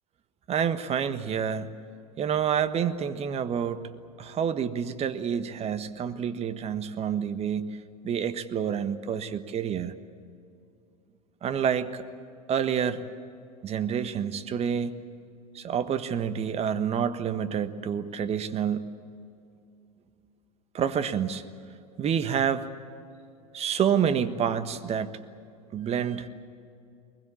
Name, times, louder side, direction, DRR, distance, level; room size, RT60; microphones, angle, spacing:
voice 1, 0.5-1.7 2.2-3.8 4.2-10.0 11.4-12.0 12.5-13.0 13.6-15.0 15.5-18.9 20.7-21.4 22.0-22.7 23.5-25.2 25.7-26.3, right 8 dB, 30° right, 10 dB, 1.4 m, -28 dB
23.0 x 21.0 x 8.6 m, 2.5 s
hypercardioid pair, 90°, 20 cm